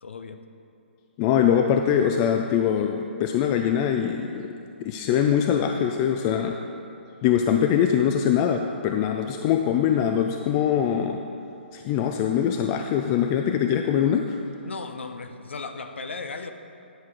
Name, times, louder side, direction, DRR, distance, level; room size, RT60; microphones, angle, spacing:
voice 1, 0.0-0.4 14.6-16.5, left 4 dB, 75° left, 8 dB, 0.6 m, -36 dB
voice 2, 1.2-4.5 4.8-6.6 7.2-11.2 11.7-14.4, left 8 dB, 30° left, 5 dB, 0.3 m, -23 dB
10.5 x 5.9 x 4.8 m, 2.7 s
hypercardioid pair, 135°, 6 cm